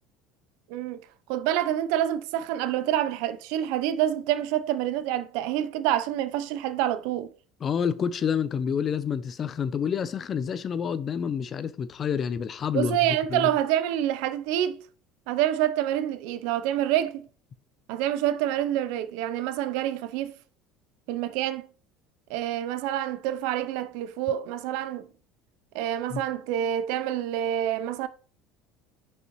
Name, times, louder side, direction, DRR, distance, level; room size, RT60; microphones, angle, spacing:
voice 1, 0.7-1.0 1.3-7.3 12.7-14.8 15.3-17.2 17.9-20.4 21.1-21.7 22.3-25.1 25.7-28.1, right 12 dB, 75° right, 0.6 m, -27 dB
voice 2, 7.6-13.0 13.3-13.5 26.1-26.2, left 7 dB, 30° left, 0.5 m, -28 dB
6.3 x 5.4 x 3.0 m
cardioid pair, 140°, 0 cm